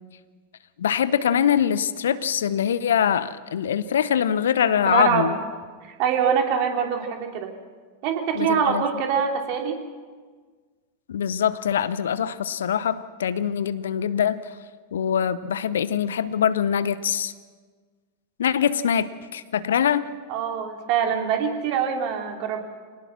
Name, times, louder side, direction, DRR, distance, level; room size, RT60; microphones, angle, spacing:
voice 1, 0.8-5.3 8.3-8.8 11.1-14.4 14.9-17.3 18.4-20.1, left 8 dB, 65° left, 16 dB, 0.7 m, -23 dB
voice 2, 4.8-5.4 5.8-7.5 8.0-9.8 20.3-22.6, right 7 dB, 45° right, 3 dB, 3.0 m, -24 dB
25.5 x 18.5 x 6.2 m, 1.5 s
figure-of-eight pair, 90°, 0 cm